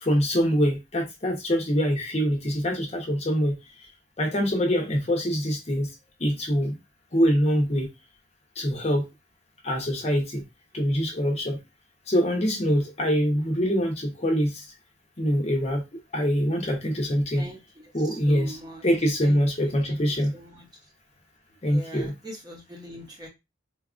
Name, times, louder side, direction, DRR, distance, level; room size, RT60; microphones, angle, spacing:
voice 1, 0.0-3.5 4.2-5.9 6.2-6.8 7.1-7.9 8.6-9.0 9.6-10.4 10.7-11.6 12.1-14.6 15.2-15.8 16.1-17.4 17.9-18.6 18.8-20.3 21.6-22.1, equal, 30° left, 1 dB, 0.8 m, -24 dB
voice 2, 18.0-18.8 19.2-20.6 21.6-23.3, equal, 20° right, 0 dB, 0.8 m, -42 dB
3.9 x 2.4 x 2.4 m, 0.22 s
head